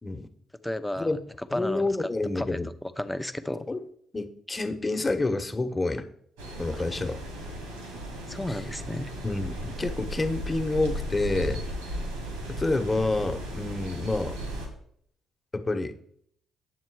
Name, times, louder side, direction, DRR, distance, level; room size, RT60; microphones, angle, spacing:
voice 1, 0.6-2.1 2.4-3.7 6.7-6.8 8.3-9.1, left 1 dB, 5° left, 11 dB, 0.8 m, -33 dB
voice 2, 1.5-2.7 3.7-3.8 4.1-6.1 6.6-7.2 9.2-11.6 12.5-14.4 15.5-15.9, left 2 dB, 25° left, 7 dB, 1.3 m, -28 dB
sound 1, 6.4-14.7, right 1 dB, 85° right, 2.1 m, -36 dB
9.5 x 7.5 x 4.8 m, 0.67 s
hypercardioid pair, 45°, 0 cm